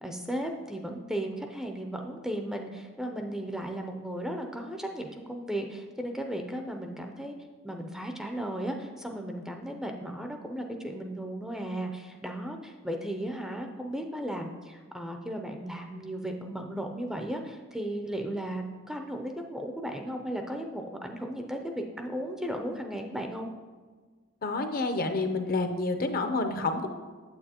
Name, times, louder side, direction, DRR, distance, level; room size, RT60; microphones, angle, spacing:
voice 1, 0.0-7.3 7.6-23.5, right 1 dB, ahead, 3 dB, 0.4 m, -35 dB
voice 2, 24.4-26.9, left 3 dB, 45° left, 6 dB, 0.6 m, -29 dB
8.8 x 7.6 x 2.9 m, 1.4 s
head